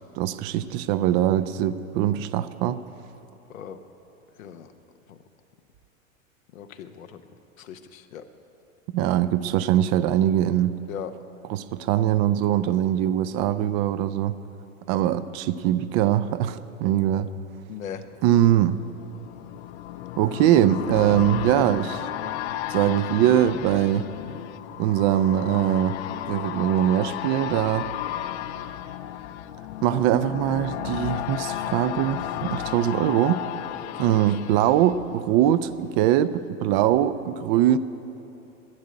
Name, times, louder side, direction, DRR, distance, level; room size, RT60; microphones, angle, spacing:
voice 1, 0.1-2.8 8.9-10.7 11.5-14.4 14.9-17.3 18.2-18.8 20.2-22.1 22.7-24.1 24.8-26.0 26.3-27.9 29.8-33.4 34.0-37.8, right 12 dB, 45° right, 13 dB, 0.6 m, -22 dB
voice 2, 4.4-4.7 5.1-5.2 6.5-7.2 7.6-8.2 10.9-11.1 17.7-18.0 33.9-34.0, left 9 dB, 75° left, 8 dB, 1.0 m, -38 dB
sound 1, 18.0-35.8 36.1-36.2, left 12 dB, 55° left, 0.6 m, -33 dB
11.5 x 9.4 x 9.8 m, 3.0 s
hypercardioid pair, 90°, 41 cm